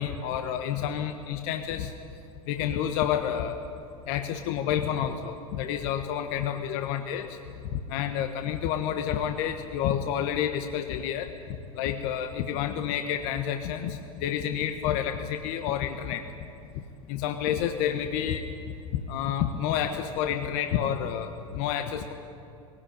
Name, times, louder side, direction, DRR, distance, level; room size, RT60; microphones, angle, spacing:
voice 1, 0.0-1.9 2.5-3.6 4.1-7.4 7.6-11.3 11.7-16.2 16.7-16.8 17.1-18.4 18.9-22.1, left 9 dB, 55° left, 6 dB, 1.3 m, -29 dB
20.0 x 17.5 x 10.0 m, 2.6 s
hypercardioid pair, 85°, 18 cm